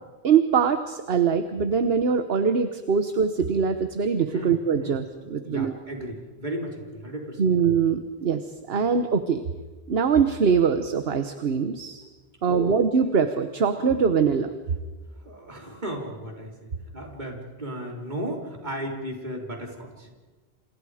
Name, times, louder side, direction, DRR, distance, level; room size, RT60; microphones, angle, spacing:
voice 1, 0.2-5.7 7.4-8.4 8.7-9.5 9.9-12.0 12.4-14.5, right 6 dB, 70° right, 9 dB, 1.3 m, -23 dB
voice 2, 4.3-5.0 5.4-7.6 12.5-12.7 15.1-20.1, equal, 45° right, 1 dB, 3.9 m, -35 dB
29.5 x 28.0 x 5.0 m, 1.3 s
omnidirectional pair, 1.1 m